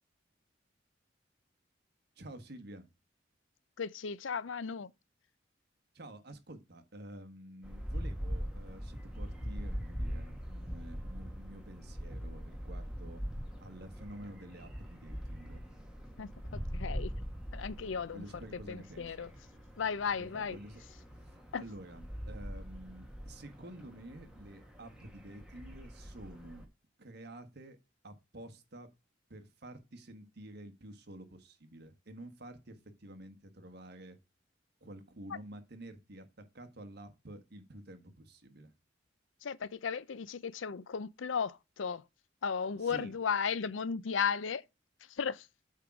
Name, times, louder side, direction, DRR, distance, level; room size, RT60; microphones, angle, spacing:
voice 1, 2.2-2.9 5.9-13.2 13.6-15.6 18.1-19.1 20.2-20.8 21.6-26.7 27.0-27.8 28.0-28.9 29.3-34.2 34.8-38.7 42.8-43.1, right 1 dB, 60° right, 1.5 m, -50 dB
voice 2, 3.8-4.9 16.2-17.1 17.5-18.3 18.5-19.3 19.8-20.6 21.5-21.6 35.3-35.4 39.4-42.0 42.4-44.6 45.1-45.5, left 6 dB, 90° left, 0.6 m, -35 dB
sound 1, 7.6-26.6, equal, 5° right, 1.9 m, -42 dB
8.3 x 3.8 x 5.9 m
head